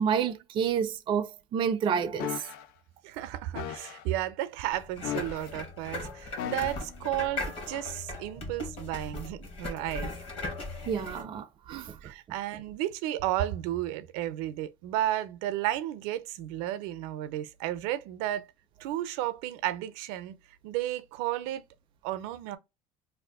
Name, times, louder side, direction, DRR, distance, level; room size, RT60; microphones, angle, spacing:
voice 1, 0.0-2.3 10.9-12.0, right 7 dB, 30° right, 0.4 m, -29 dB
sound 1, 2.2-2.7 3.6-4.0 5.0-5.6 6.4-7.0 7.7-7.9, left 10 dB, 70° left, 0.4 m, -37 dB
voice 2, 3.0-10.1 11.7-18.5 18.8-20.4 20.6-21.6 22.0-22.6, right 13 dB, 85° right, 0.5 m, -33 dB
sound 2, 4.7-11.2, left 2 dB, 35° left, 1.0 m, -38 dB
2.6 x 2.4 x 3.4 m
cardioid pair, 150°, 16 cm